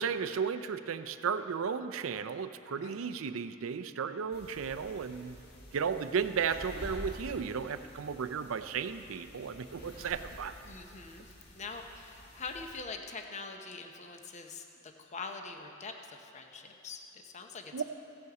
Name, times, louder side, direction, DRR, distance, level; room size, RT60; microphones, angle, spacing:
voice 1, 0.0-5.4 5.7-10.5 17.7-17.8, right 6 dB, 75° right, 11 dB, 0.5 m, -34 dB
sound 1, 4.3-12.8, equal, 55° left, 1.9 m, -49 dB
voice 2, 10.6-17.8, left 4 dB, 35° left, 4 dB, 0.7 m, -44 dB
16.0 x 6.9 x 4.8 m, 2.9 s
head